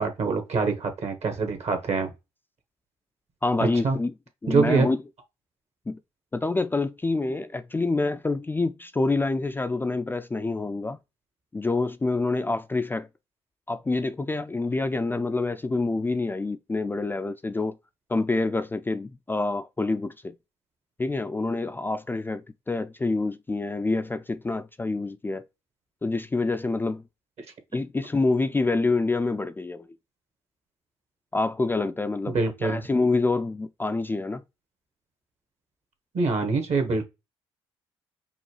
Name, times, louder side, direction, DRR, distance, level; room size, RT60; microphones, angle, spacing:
voice 1, 0.0-2.1 3.8-4.0 4.5-4.9 32.3-32.8 36.1-37.0, right 4 dB, 55° right, 1.3 m, -24 dB
voice 2, 3.4-4.1 4.4-5.0 5.9-6.0 6.3-11.0 11.5-13.1 13.7-17.8 18.1-20.3 21.0-25.5 26.0-27.0 27.7-29.9 31.3-34.4, left 3 dB, 15° left, 0.3 m, -27 dB
5.4 x 2.2 x 3.2 m
hypercardioid pair, 50°, 13 cm